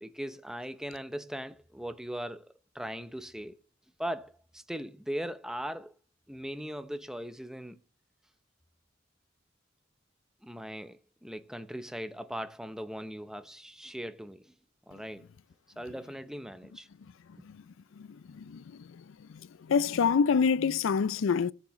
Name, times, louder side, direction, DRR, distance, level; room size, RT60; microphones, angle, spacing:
voice 1, 0.0-3.6 4.0-5.9 6.3-7.8 10.4-14.5 14.9-15.3 15.8-16.9, equal, 5° right, 0.6 m, -39 dB
voice 2, 19.7-21.5, left 6 dB, 80° left, 0.4 m, -25 dB
18.5 x 7.3 x 3.1 m
head